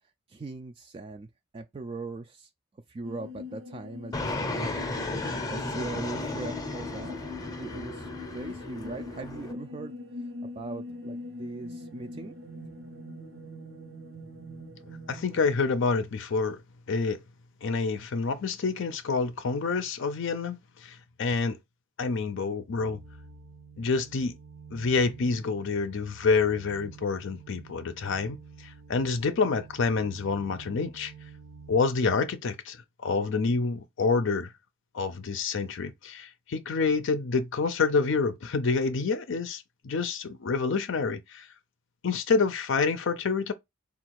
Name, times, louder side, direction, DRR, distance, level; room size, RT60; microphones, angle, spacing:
voice 1, 0.3-2.5 2.9-4.7 5.0-7.2 7.6-10.3 10.5-12.3, right 3 dB, 25° right, 0.3 m, -40 dB
sound 1, 3.0-15.5, left 2 dB, 85° right, 1.0 m, -42 dB
Fixed-wing aircraft airplane, 4.1-9.5, left 2 dB, 20° left, 0.7 m, -34 dB
voice 2, 15.1-16.6 16.9-17.2 17.6-21.6 22.0-23.0 23.8-24.4 24.7-31.1 31.7-34.5 34.9-41.5 42.0-43.5, left 4 dB, 65° left, 0.5 m, -28 dB
sound 2, 22.7-31.8, right 5 dB, 65° right, 0.7 m, -49 dB
3.8 x 2.4 x 4.5 m
head